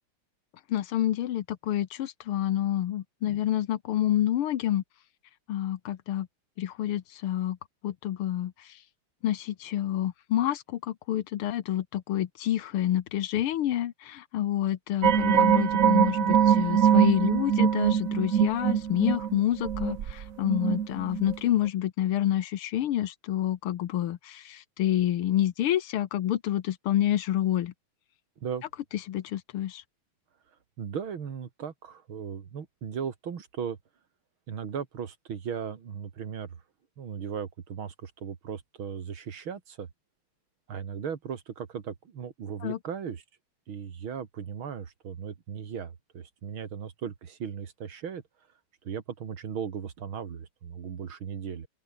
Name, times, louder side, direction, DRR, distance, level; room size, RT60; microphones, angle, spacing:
voice 1, 0.7-4.8 5.5-6.3 6.6-7.6 7.8-8.5 9.2-27.7 29.1-29.8 42.6-42.8, left 12 dB, 80° left, 1.9 m, -28 dB
sound 1, 15.0-21.4 21.6-21.7, right 9 dB, 50° right, 1.2 m, -23 dB
voice 2, 30.8-33.8 34.5-36.6 37.0-39.9 40.7-43.2 43.7-48.2 48.8-51.7, right 7 dB, 70° right, 2.8 m, -37 dB
open air
omnidirectional pair, 2.4 m